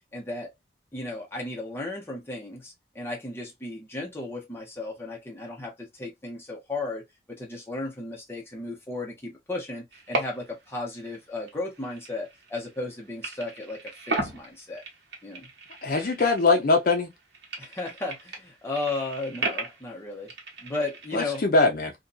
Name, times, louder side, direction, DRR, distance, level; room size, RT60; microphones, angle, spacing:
voice 1, 0.1-0.5 0.9-7.0 7.3-14.8 15.2-15.5 17.6-20.3 20.6-21.4, left 2 dB, 15° left, 0.7 m, -35 dB
sound 1, 9.9-10.7 11.0-12.9 13.2-16.8 17.1-21.4, right 2 dB, 70° right, 0.9 m, -36 dB
voice 2, 15.8-17.1 21.1-21.9, left 3 dB, 50° left, 0.5 m, -22 dB
2.6 x 2.2 x 2.3 m
head